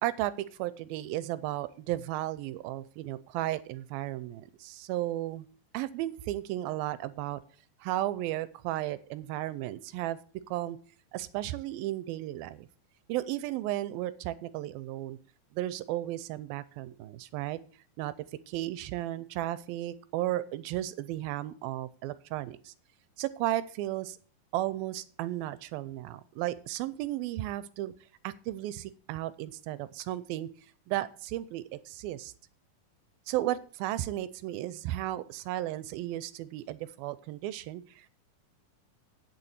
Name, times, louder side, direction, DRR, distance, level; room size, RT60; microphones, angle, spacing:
voice 1, 0.0-5.5 5.7-7.4 7.8-10.2 10.5-10.8 11.1-12.7 13.1-15.2 15.5-17.6 18.0-18.1 18.5-22.7 23.2-24.2 24.5-27.9 28.2-30.5 30.9-32.3 33.3-38.1, right 15 dB, 85° right, 16 dB, 2.5 m, -34 dB
9.0 x 7.0 x 8.0 m, 0.43 s
omnidirectional pair, 4.2 m